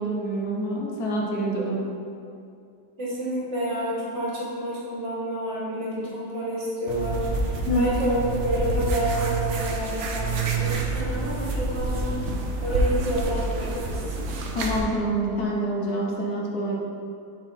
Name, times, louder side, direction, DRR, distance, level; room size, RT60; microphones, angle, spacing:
voice 1, 0.0-1.8 7.7-7.9 14.5-16.8, right 1 dB, 60° left, -2 dB, 1.3 m, -26 dB
voice 2, 3.0-12.1 12.6-14.2, right 1 dB, 40° right, -7 dB, 2.0 m, -29 dB
sound 1, 6.9-14.8, right 2 dB, 65° right, 0.7 m, -28 dB
7.1 x 4.1 x 4.2 m, 2.4 s
omnidirectional pair, 2.0 m